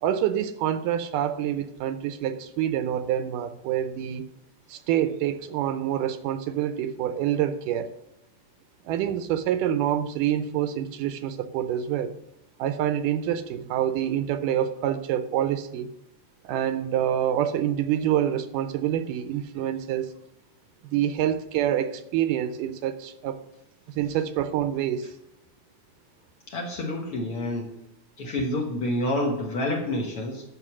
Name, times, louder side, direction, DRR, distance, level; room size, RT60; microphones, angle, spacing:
voice 1, 0.0-4.3 4.7-7.9 8.9-12.1 12.6-15.9 16.4-20.1 20.8-23.4 24.0-25.1, right 10 dB, 80° right, 11 dB, 2.2 m, -26 dB
voice 2, 26.5-27.7 28.2-30.4, left 1 dB, 50° left, 0 dB, 2.0 m, -28 dB
12.5 x 5.7 x 6.2 m, 0.81 s
omnidirectional pair, 3.8 m